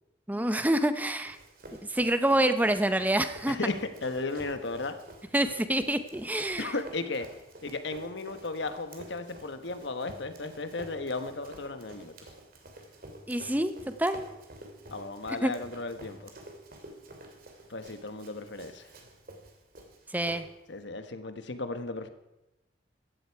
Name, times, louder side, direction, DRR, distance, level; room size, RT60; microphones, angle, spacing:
voice 1, 0.3-1.4 1.9-3.6 5.3-6.7 13.3-14.2 15.4-15.5 20.1-20.5, right 1 dB, 10° right, 10 dB, 0.7 m, -27 dB
Run, 0.9-20.8, right 1 dB, 50° right, 2.7 m, -50 dB
voice 2, 3.5-4.9 6.6-7.3 7.6-12.1 14.9-16.3 17.7-18.9 20.7-22.1, left 3 dB, 65° left, 9 dB, 1.2 m, -35 dB
15.5 x 13.0 x 4.6 m, 0.99 s
head